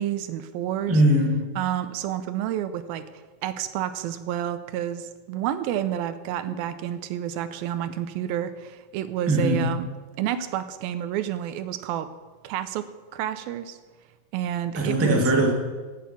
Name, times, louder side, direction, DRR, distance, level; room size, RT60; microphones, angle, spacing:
voice 1, 0.0-1.0 1.6-3.0 3.4-9.9 10.2-12.1 12.4-12.9 13.1-13.8 14.3-15.2, right 11 dB, 85° right, 11 dB, 2.5 m, -29 dB
voice 2, 0.9-1.5 9.3-9.7 14.7-15.5, right 1 dB, 10° right, 0 dB, 0.6 m, -21 dB
10.0 x 8.4 x 8.4 m, 1.3 s
omnidirectional pair, 4.2 m